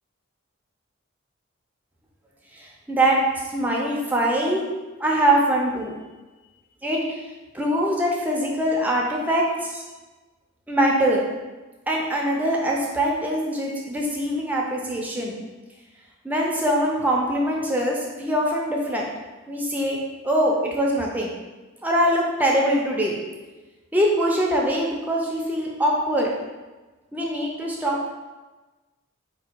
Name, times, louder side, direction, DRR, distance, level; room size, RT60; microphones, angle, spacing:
voice 1, 2.5-4.6 5.0-6.0 6.8-7.2 7.5-9.8 10.7-11.3 11.9-15.4 16.2-19.0 19.5-21.3 21.8-23.2 23.9-26.3 27.1-28.1, right 1 dB, 5° right, -2 dB, 0.5 m, -23 dB
3.8 x 2.7 x 4.4 m, 1.2 s
head